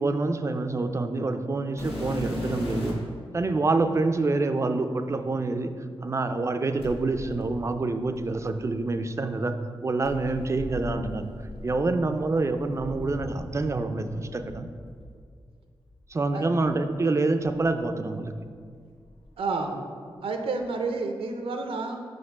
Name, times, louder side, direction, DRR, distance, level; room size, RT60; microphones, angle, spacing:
voice 1, 0.0-2.9 3.3-5.7 6.0-9.5 9.8-11.3 11.6-14.7 16.1-18.3, right 3 dB, 30° right, 8 dB, 0.4 m, -26 dB
sound 1, 1.8-3.2 4.0-4.1 6.8-8.9 10.0-13.8 14.0-15.1 15.9-16.0 16.6-16.7 17.4-18.5 18.8-19.3 20.6-20.7, left 1 dB, 80° left, 1.1 m, -38 dB
voice 2, 19.4-19.8 20.2-22.0, right 3 dB, 80° right, 4 dB, 0.6 m, -30 dB
4.8 x 4.3 x 5.8 m, 2.1 s
wide cardioid pair, 90°, 9 cm